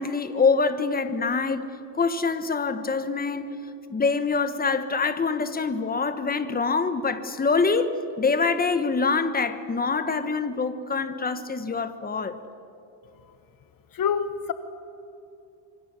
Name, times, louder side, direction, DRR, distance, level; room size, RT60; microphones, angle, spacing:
voice 1, 0.0-3.5 3.9-12.4, left 4 dB, 20° left, 10 dB, 1.4 m, -25 dB
voice 2, 13.9-14.5, left 7 dB, 45° left, 11 dB, 1.1 m, -26 dB
26.5 x 23.5 x 7.6 m, 2.9 s
cardioid pair, 145°, 48 cm